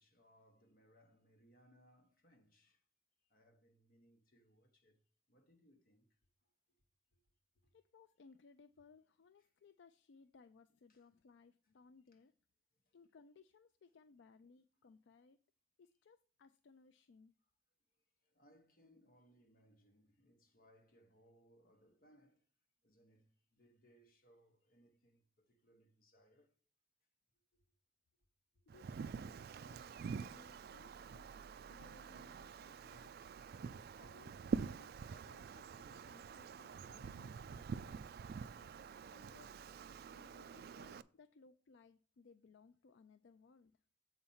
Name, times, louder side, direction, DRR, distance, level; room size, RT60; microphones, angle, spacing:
voice 1, 0.0-2.8 3.2-5.0 5.3-6.5 7.1-7.2 7.6-7.7 9.4-9.5 10.9-11.0 12.1-12.2 12.7-13.0 18.2-22.4 22.8-26.5, equal, 50° left, 1.3 m, -70 dB
voice 2, 7.7-12.3 12.9-15.4 15.8-17.3 28.7-29.3 29.6-31.3 31.7-33.1 33.6-38.0 39.1-39.6 40.1-43.7, left 4 dB, 65° left, 0.4 m, -64 dB
Wind, 28.7-41.0, right 5 dB, 55° right, 0.3 m, -46 dB
7.8 x 4.4 x 5.5 m
head